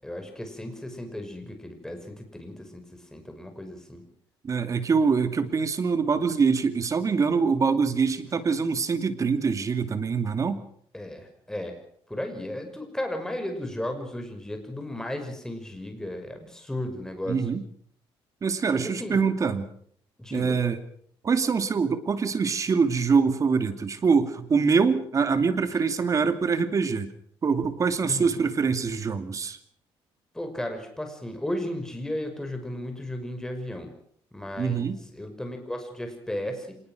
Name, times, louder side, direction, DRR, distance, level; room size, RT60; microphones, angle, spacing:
voice 1, 0.0-4.0 10.9-11.8 12.1-17.4 18.7-19.2 20.2-20.6 28.0-28.3 30.3-33.9 34.3-36.8, left 1 dB, 5° left, 5 dB, 6.0 m, -35 dB
voice 2, 4.4-10.6 17.3-17.6 18.4-19.7 20.3-20.8 21.2-27.1 27.4-29.6 34.6-35.0, right 5 dB, 35° right, 9 dB, 2.6 m, -24 dB
26.0 x 20.5 x 6.5 m, 0.63 s
cardioid pair, 125°, 10 cm